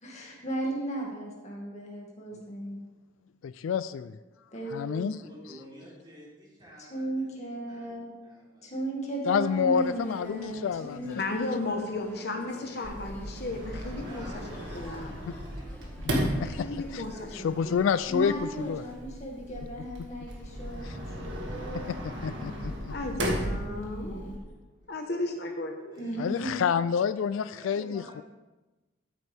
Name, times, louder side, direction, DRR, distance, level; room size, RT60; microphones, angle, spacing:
voice 1, 0.0-2.8 4.5-5.1 6.9-8.1 8.6-11.2 18.1-21.9 23.4-24.4 26.0-26.5, right 2 dB, 35° left, -1 dB, 2.1 m, -36 dB
voice 2, 3.4-4.2 4.7-5.2 9.3-11.2 16.2-16.7 16.9-17.0 17.3-18.8 20.8-20.9 21.9-22.7 26.2-28.2, left 7 dB, 75° left, 15 dB, 0.3 m, -28 dB
voice 3, 5.1-7.9 8.2-8.8 13.9-17.6 22.2-22.5 25.9-26.4 27.5-28.2, equal, 20° right, -6 dB, 3.4 m, -51 dB
sound 1, 9.7-19.0, left 1 dB, 10° left, 1.4 m, -51 dB
voice 4, 11.1-14.3 14.5-15.2 16.4-17.9 22.9-24.4 24.9-26.1, left 2 dB, 55° left, 3 dB, 1.1 m, -35 dB
Sliding door, 12.8-24.4, equal, 60° right, 2.0 m, -36 dB
13.5 x 8.6 x 3.5 m, 1.1 s
head